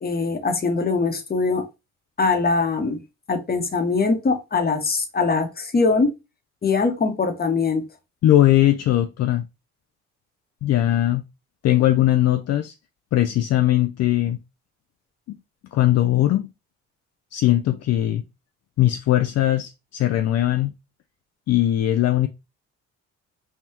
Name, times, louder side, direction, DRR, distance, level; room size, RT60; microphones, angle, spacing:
voice 1, 0.0-1.6 2.2-3.0 3.3-6.1 6.6-7.8, left 4 dB, 30° left, 0.9 m, -22 dB
voice 2, 8.2-9.4 10.6-11.2 11.6-12.7 13.1-14.4 15.3-15.4 15.7-16.5 17.3-18.2 18.8-20.7 21.5-22.3, left 13 dB, 55° left, 0.4 m, -19 dB
5.6 x 2.3 x 2.8 m
cardioid pair, 90°, 30 cm